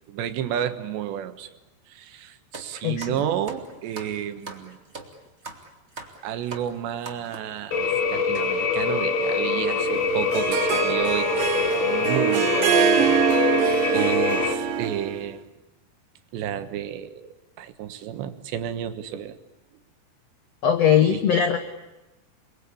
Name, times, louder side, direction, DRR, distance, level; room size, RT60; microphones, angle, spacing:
voice 1, 0.1-1.5 1.9-4.8 6.2-7.8 8.1-13.2 13.9-15.4 16.3-19.4 21.1-21.2, right 10 dB, 85° right, 9 dB, 3.6 m, -31 dB
sound 1, 2.5-7.6 8.3-8.5 9.2-9.3 9.5-9.7 10.7-10.9 11.3-11.4 12.0-12.1 12.5-12.7 13.1-13.3, right 3 dB, 20° right, 2.1 m, -42 dB
voice 2, 2.8-3.2 20.6-21.6, left 8 dB, 85° left, 8 dB, 1.4 m, -20 dB
sound 2, 7.7-14.5, left 4 dB, 50° left, 2.6 m, -24 dB
Harp, 9.9-15.2, right 8 dB, 65° right, 2.5 m, -24 dB
28.5 x 22.5 x 8.5 m, 1.0 s
omnidirectional pair, 4.9 m